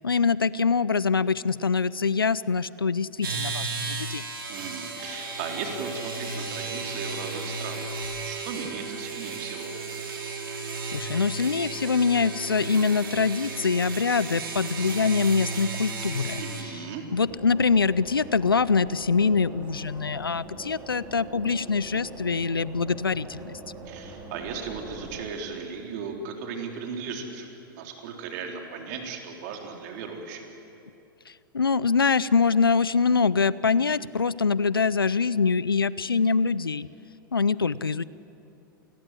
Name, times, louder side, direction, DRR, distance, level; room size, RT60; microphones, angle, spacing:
voice 1, 0.0-4.2 10.6-16.4 17.1-23.5 31.3-36.9 37.3-38.0, left 5 dB, 85° left, 20 dB, 0.5 m, -24 dB
sound 1, 3.2-16.6, right 3 dB, 75° right, 3.3 m, -35 dB
voice 2, 4.5-9.7 16.4-17.0 23.9-30.4, right 5 dB, 50° right, 2 dB, 3.9 m, -37 dB
sound 2, 4.9-16.4, right 6 dB, 40° left, 4.4 m, -43 dB
sound 3, 17.3-25.3, right 2 dB, 25° right, 4.4 m, -43 dB
28.0 x 20.5 x 7.6 m, 2.8 s
figure-of-eight pair, 100°, 12 cm